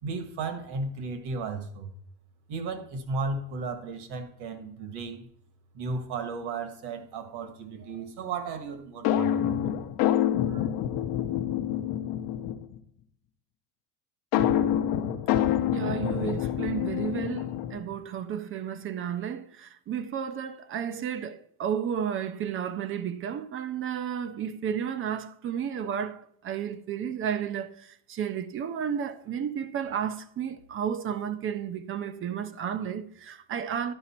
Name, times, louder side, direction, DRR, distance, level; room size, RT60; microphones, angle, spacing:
voice 1, 0.0-1.9 2.5-5.3 5.7-9.6 10.4-10.7, right 3 dB, 55° right, 1.6 m, -35 dB
sound 1, 9.0-12.8 14.3-17.9, left 10 dB, 50° left, 0.8 m, -27 dB
voice 2, 15.7-33.9, right 8 dB, 30° right, 0.4 m, -32 dB
10.5 x 5.0 x 4.3 m
cardioid pair, 145°, 46 cm